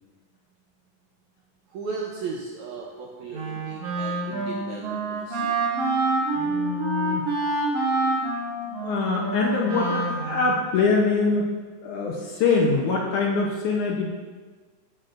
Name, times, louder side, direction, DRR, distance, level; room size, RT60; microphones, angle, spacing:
voice 1, 1.7-5.6, right 4 dB, 75° right, -2 dB, 1.7 m, -36 dB
Wind instrument woodwind instrument, 3.3-10.6, right 3 dB, 55° right, 2.2 m, -27 dB
voice 2, 6.3-7.3 8.8-11.5 11.8-14.1, left 4 dB, 70° left, -1 dB, 2.0 m, -24 dB
12.0 x 7.8 x 2.5 m, 1.4 s
omnidirectional pair, 4.1 m